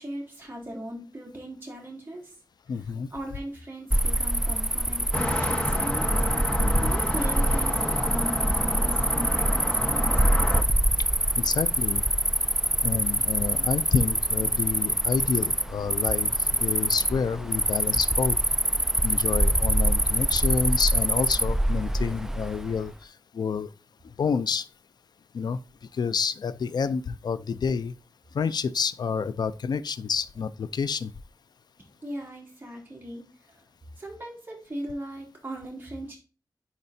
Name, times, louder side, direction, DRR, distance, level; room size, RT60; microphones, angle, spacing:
voice 1, 0.0-2.3 3.1-6.1 6.8-10.4 32.0-33.3 34.0-36.2, right 1 dB, 30° right, 3.4 m, -38 dB
voice 2, 2.7-3.1 6.6-6.9 11.4-12.0 12.8-18.4 19.0-23.7 24.2-24.7 25.3-25.6 25.9-27.9 28.3-31.1, left 6 dB, 80° left, 0.4 m, -29 dB
Cricket, 3.9-22.8, right 1 dB, 5° right, 0.3 m, -25 dB
sound 1, 5.1-10.6, left 1 dB, 15° left, 1.2 m, -30 dB
9.8 x 4.2 x 2.6 m
wide cardioid pair, 130°, 7 cm